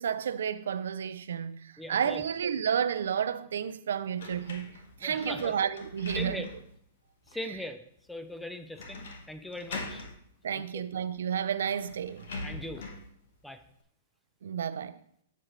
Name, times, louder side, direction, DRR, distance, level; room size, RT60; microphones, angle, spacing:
voice 1, 0.0-6.5 10.4-12.3 14.4-15.0, right 8 dB, 85° right, 0.4 m, -31 dB
voice 2, 1.8-2.2 5.0-5.5 6.2-6.5 7.3-7.8 8.1-10.1 10.5-10.6 12.4-12.8 13.4-13.6, left 1 dB, 5° left, 0.6 m, -40 dB
sound 1, 4.2-6.8 7.3-7.4 8.8-9.3 9.5-10.2 11.2-11.3 11.6-13.1, left 2 dB, 80° left, 1.4 m, -42 dB
7.8 x 7.4 x 3.2 m
hypercardioid pair, 140°, 0 cm